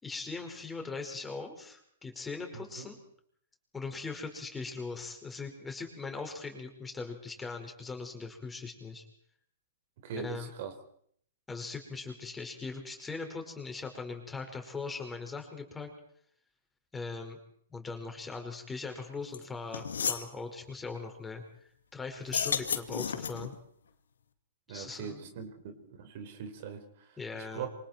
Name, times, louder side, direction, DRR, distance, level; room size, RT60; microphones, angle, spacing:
voice 1, 0.0-3.0 3.7-9.0 10.2-10.5 11.5-15.9 16.9-17.4 17.7-21.4 21.9-23.6 24.7-25.4 27.2-27.7, left 4 dB, 10° left, 3 dB, 5.2 m, -40 dB
voice 2, 2.5-2.9 10.0-10.7 24.7-27.2 27.5-27.7, right 7 dB, 50° right, 7 dB, 4.3 m, -41 dB
sound 1, 19.3-19.4 19.7-20.3 22.2-23.5, left 7 dB, 75° left, 2.2 m, -32 dB
27.5 x 25.5 x 4.6 m, 0.65 s
hypercardioid pair, 115°, 0 cm